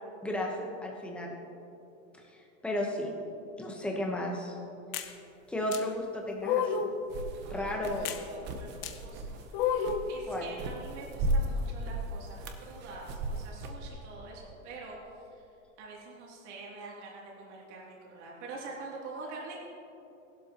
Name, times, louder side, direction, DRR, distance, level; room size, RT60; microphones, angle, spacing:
voice 1, 0.2-1.4 2.3-3.1 3.6-4.6 5.5-6.8 7.5-8.2 10.3-10.5, left 1 dB, 5° left, -1 dB, 1.0 m, -34 dB
sound 1, 4.9-5.1 5.7-5.8 6.4-7.0 8.1-8.2 8.8-8.9 9.5-10.1, left 7 dB, 40° left, 0.7 m, -30 dB
sound 2, 7.1-13.9, right 1 dB, 25° right, 0.8 m, -36 dB
voice 2, 7.4-15.0 15.3-15.5 15.8-19.6, right 3 dB, 60° right, -4 dB, 2.8 m, -46 dB
16.5 x 12.0 x 3.0 m, 2.9 s
supercardioid pair, 155°, 39 cm